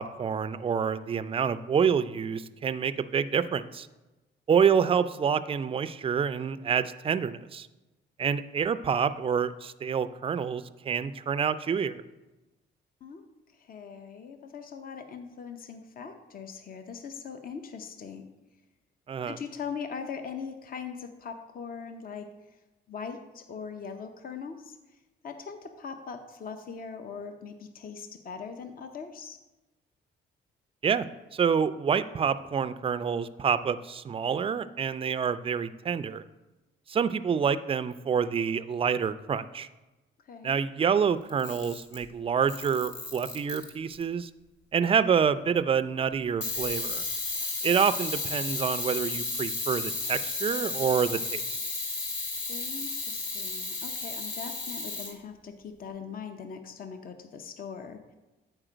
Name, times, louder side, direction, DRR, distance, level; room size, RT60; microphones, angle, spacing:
voice 1, 0.0-3.9 4.5-7.7 8.2-12.0 19.1-19.4 30.8-31.1 31.3-36.2 36.9-39.7 40.4-44.3 44.7-47.1 47.6-51.6, right 7 dB, 30° right, 12 dB, 0.4 m, -27 dB
voice 2, 13.5-18.2 19.2-22.3 22.9-24.8 25.2-29.4 40.3-40.6 52.5-58.0, left 6 dB, 45° left, 7 dB, 0.7 m, -41 dB
Camera, 41.3-42.0 42.5-44.0 46.4-55.1, left 3 dB, 65° left, 1.6 m, -33 dB
8.8 x 4.4 x 5.0 m, 1.1 s
cardioid pair, 90°, 20 cm